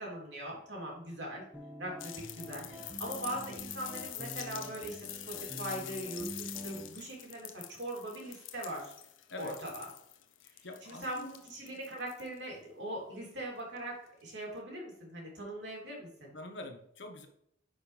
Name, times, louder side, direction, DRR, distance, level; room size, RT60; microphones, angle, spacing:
voice 1, 0.0-1.4 1.8-8.9 9.4-9.9 10.8-16.3, right 1 dB, 65° right, -2 dB, 3.0 m, -41 dB
sound 1, 1.5-6.9, equal, 5° right, 1.3 m, -46 dB
sound 2, 2.0-12.4 13.8-13.9, left 12 dB, 90° left, 0.7 m, -45 dB
voice 2, 10.4-11.4 16.3-17.3, left 2 dB, 65° left, 5 dB, 1.1 m, -46 dB
9.6 x 5.3 x 3.3 m, 0.75 s
head